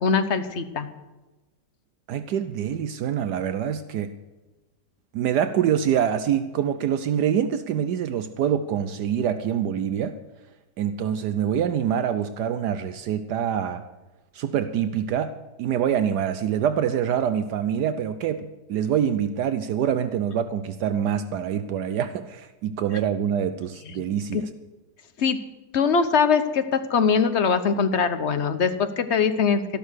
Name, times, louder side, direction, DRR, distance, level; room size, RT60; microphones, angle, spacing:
voice 1, 0.0-0.9 23.9-24.0 24.3-24.4 25.2-25.4 25.7-29.6, left 6 dB, 45° left, 10 dB, 1.1 m, -22 dB
voice 2, 2.1-4.1 5.1-10.2 10.8-13.8 14.3-24.5, right 9 dB, 75° right, 11 dB, 1.2 m, -25 dB
13.5 x 12.0 x 6.4 m, 1.1 s
omnidirectional pair, 1.8 m